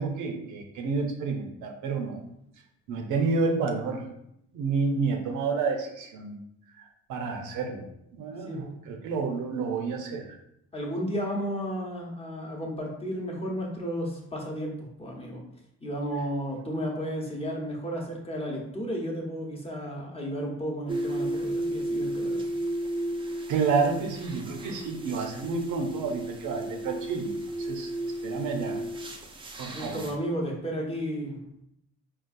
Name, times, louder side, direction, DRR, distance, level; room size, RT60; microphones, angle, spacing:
voice 1, 0.0-2.2 2.9-4.0 4.5-6.4 6.7-7.8 8.1-10.3 23.5-27.9 28.2-28.8 29.6-30.0, right 4 dB, 85° right, 2 dB, 0.6 m, -29 dB
voice 2, 10.7-14.7 15.0-15.4 15.8-22.4 29.7-31.4, equal, 20° left, -1 dB, 0.8 m, -33 dB
sound 1, 20.9-30.1, right 1 dB, 20° right, 0.3 m, -34 dB
3.9 x 2.4 x 2.5 m, 0.79 s
cardioid pair, 90°, 30 cm